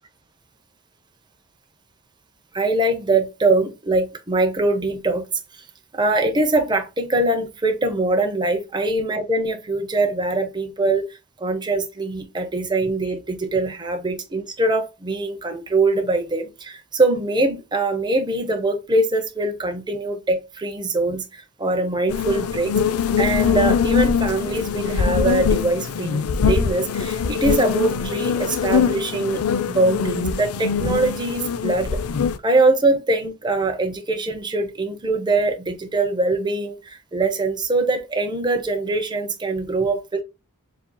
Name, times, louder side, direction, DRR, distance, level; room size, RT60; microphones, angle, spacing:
voice 1, 2.5-5.2 5.5-5.6 5.9-22.7 23.2-29.4 29.7-32.0 32.4-40.2, right 2 dB, 20° right, 0.7 m, -22 dB
sound 1, 22.1-32.4, left 6 dB, 75° left, 0.5 m, -22 dB
7.4 x 2.7 x 2.2 m
head